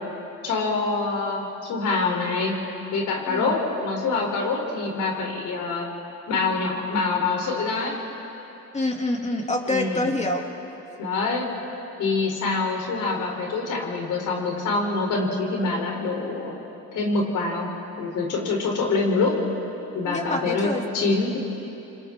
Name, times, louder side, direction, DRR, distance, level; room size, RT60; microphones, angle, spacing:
voice 1, 0.4-2.5 2.9-5.9 6.3-8.0 9.7-10.1 11.0-11.5 12.0-16.5 16.9-17.7 18.0-19.3 19.9-21.4, left 3 dB, 85° left, 0 dB, 3.9 m, -25 dB
voice 2, 8.7-10.4 20.0-20.8, left 2 dB, 25° left, 1 dB, 2.8 m, -26 dB
28.5 x 25.0 x 3.8 m, 3.0 s
cardioid pair, 90°, 30 cm